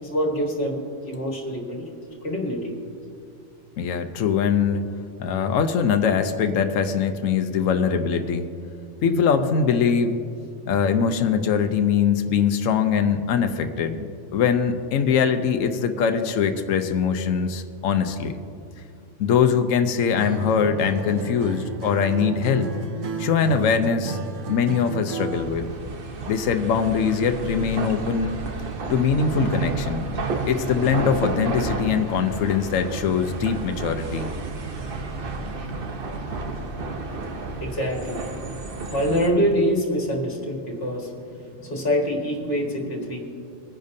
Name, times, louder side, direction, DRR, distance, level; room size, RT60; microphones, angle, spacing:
voice 1, 0.0-1.9 2.2-2.7 37.6-38.3 38.9-43.2, equal, 50° left, -1 dB, 2.0 m, -25 dB
voice 2, 3.8-4.8 5.2-8.5 9.0-10.2 10.7-18.4 19.2-22.7 23.2-24.2 24.5-25.7 26.3-28.4 28.9-30.1 30.5-34.3, left 6 dB, 85° left, 8 dB, 1.1 m, -22 dB
Acoustic guitar, 20.2-25.6, right 3 dB, 70° right, 1.1 m, -32 dB
sound 1, 25.3-39.3, right 3 dB, 50° right, 1.0 m, -31 dB
21.5 x 10.0 x 2.7 m, 2.4 s
omnidirectional pair, 1.3 m